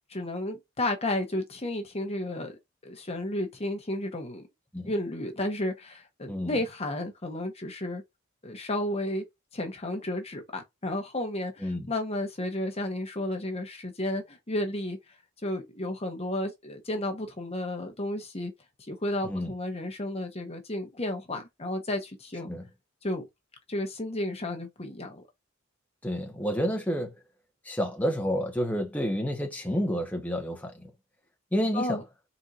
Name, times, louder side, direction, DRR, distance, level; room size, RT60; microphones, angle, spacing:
voice 1, 0.1-2.5 2.8-4.4 4.9-8.0 8.4-9.2 9.5-15.0 15.4-18.5 18.9-22.5 23.0-23.2 23.7-25.2 31.7-32.0, left 1 dB, 30° left, 1.1 m, -32 dB
voice 2, 11.6-11.9 19.2-19.5 22.5-22.7 26.0-27.1 27.6-30.9 31.5-32.0, equal, 10° left, 1.0 m, -29 dB
4.5 x 4.0 x 2.5 m
head